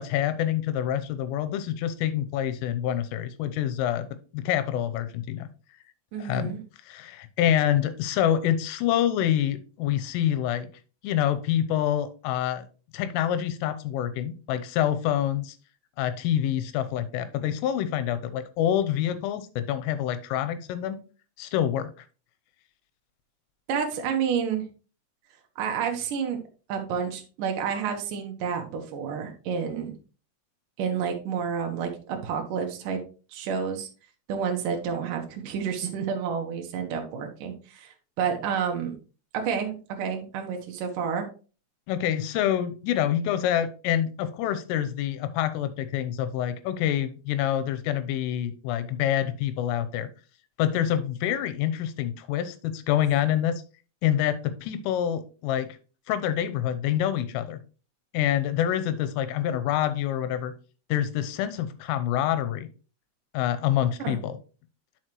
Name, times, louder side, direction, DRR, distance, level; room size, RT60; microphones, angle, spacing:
voice 1, 0.0-4.1 4.3-5.5 6.2-6.6 6.9-10.7 11.0-12.7 12.9-15.6 16.0-21.0 21.4-21.9 41.9-50.1 50.6-53.6 54.0-55.8 56.1-57.6 58.1-60.5 60.9-62.7 63.3-64.4, left 11 dB, 90° left, 12 dB, 3.4 m, -26 dB
voice 2, 6.1-6.6 23.7-24.6 25.6-26.4 26.7-29.9 30.8-33.0 33.3-33.9 34.3-39.0 39.3-41.3 64.0-64.2, right 7 dB, 85° right, 3 dB, 1.9 m, -29 dB
9.0 x 6.4 x 3.0 m, 0.35 s
omnidirectional pair, 5.6 m